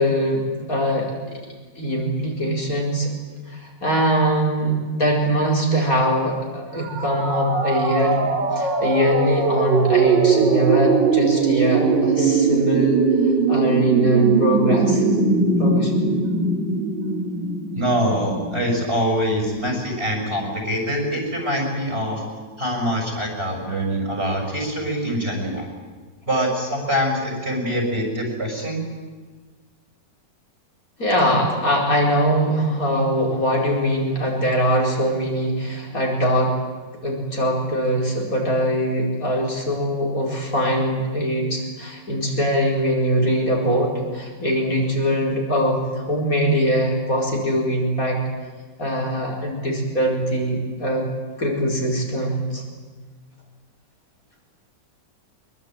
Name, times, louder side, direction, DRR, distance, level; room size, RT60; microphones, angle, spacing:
voice 1, 0.0-1.4 1.8-3.1 3.5-13.0 13.5-15.0 15.6-16.1 31.0-36.5 37.0-48.2 48.8-51.1 51.4-52.6, equal, 50° left, -1 dB, 5.1 m, -22 dB
sound 1, 6.8-18.6, right 4 dB, 85° right, 3.1 m, -20 dB
voice 2, 17.7-22.2 22.6-25.7 26.3-28.8, equal, 35° right, 2 dB, 7.0 m, -24 dB
24.0 x 22.5 x 9.2 m, 1.4 s
omnidirectional pair, 1.9 m